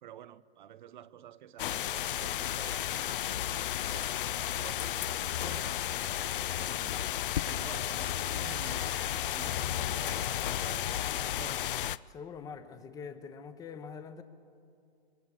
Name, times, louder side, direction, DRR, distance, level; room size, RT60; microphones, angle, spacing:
voice 1, 0.0-4.2 4.6-7.0 7.4-11.6, right 11 dB, 45° right, 0.6 m, -50 dB
sound 1, 1.6-12.0, left 11 dB, 55° left, 0.5 m, -33 dB
voice 2, 12.1-14.2, left 6 dB, 10° left, 0.8 m, -44 dB
25.0 x 22.0 x 4.9 m
hypercardioid pair, 140°, 33 cm